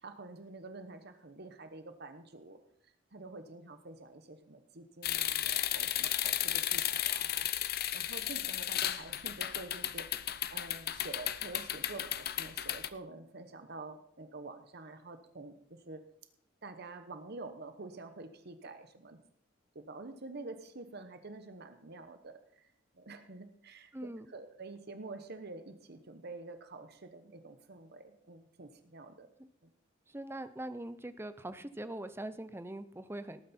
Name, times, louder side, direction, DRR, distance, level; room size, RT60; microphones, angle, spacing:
voice 1, 0.0-2.6 3.1-10.2 10.5-16.0 16.6-19.2 19.7-22.7 22.9-23.9 24.3-29.3 29.6-29.7, right 3 dB, 50° right, 8 dB, 1.1 m, -48 dB
sound 1, 5.0-12.9, left 12 dB, 50° left, 0.6 m, -34 dB
voice 2, 23.9-24.3 29.4-29.5 30.1-33.4, right 1 dB, 10° right, 12 dB, 0.7 m, -42 dB
18.5 x 9.3 x 4.4 m, 0.68 s
head